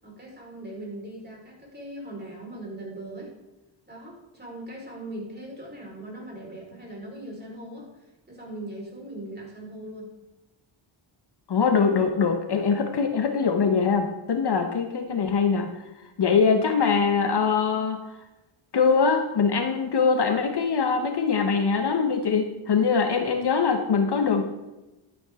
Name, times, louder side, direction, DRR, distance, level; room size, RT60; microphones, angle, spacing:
voice 1, 0.0-3.3 3.9-10.1, right 1 dB, 20° right, -3 dB, 4.5 m, -40 dB
voice 2, 11.5-15.7 16.2-18.0 18.7-24.6, left 5 dB, 55° left, 6 dB, 1.0 m, -23 dB
12.5 x 9.0 x 3.6 m, 1.0 s
cardioid pair, 95°, 49 cm